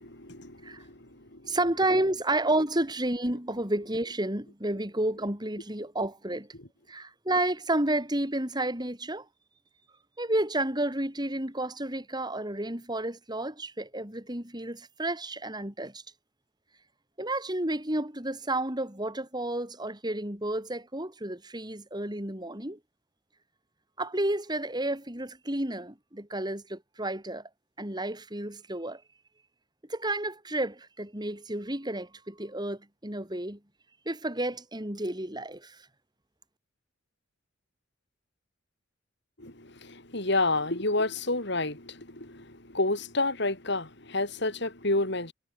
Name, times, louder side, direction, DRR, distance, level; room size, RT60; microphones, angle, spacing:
voice 1, 0.0-1.6 6.6-6.7 39.4-45.3, left 2 dB, 60° left, 7.4 m, -30 dB
voice 2, 1.5-6.5 6.9-9.3 10.2-16.0 17.2-22.8 24.0-27.4 27.8-29.0 29.9-33.6 34.1-35.8, right 1 dB, 20° right, 5.8 m, -31 dB
head